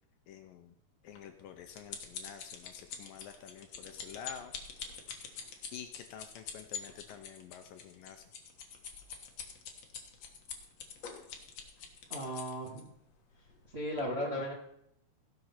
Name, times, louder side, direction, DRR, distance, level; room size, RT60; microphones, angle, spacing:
voice 1, 0.3-0.8 1.0-4.5 5.7-8.2, left 8 dB, 75° left, 7 dB, 2.2 m, -49 dB
sound 1, 1.2-12.8 13.5-13.6 14.0-14.1, left 6 dB, 55° left, 2.1 m, -45 dB
voice 2, 12.1-12.9 13.7-14.5, equal, 30° right, -2 dB, 1.0 m, -36 dB
16.5 x 6.7 x 5.9 m, 0.76 s
omnidirectional pair, 4.5 m